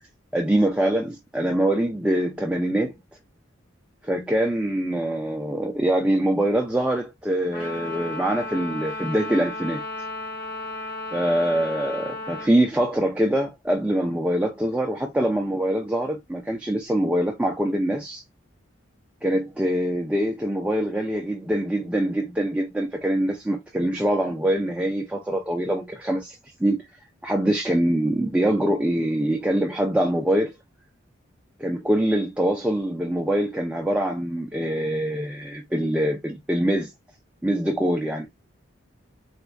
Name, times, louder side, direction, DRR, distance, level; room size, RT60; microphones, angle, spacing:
voice 1, 0.3-3.0 4.0-9.8 11.1-18.2 19.2-26.9 27.2-30.5 31.6-36.9 37.4-38.3, right 1 dB, 5° right, 0.3 m, -24 dB
Trumpet, 7.5-12.5, left 2 dB, 50° left, 1.9 m, -34 dB
4.2 x 2.4 x 2.2 m
head